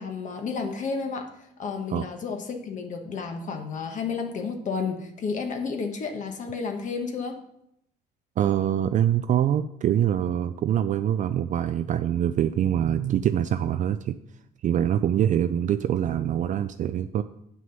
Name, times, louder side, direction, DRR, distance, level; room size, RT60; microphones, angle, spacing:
voice 1, 0.0-7.4, left 5 dB, 50° left, 4 dB, 1.3 m, -31 dB
voice 2, 8.4-14.1 14.6-17.2, right 10 dB, 50° right, 10 dB, 0.4 m, -24 dB
7.6 x 6.2 x 5.6 m, 0.77 s
cardioid pair, 110°, 17 cm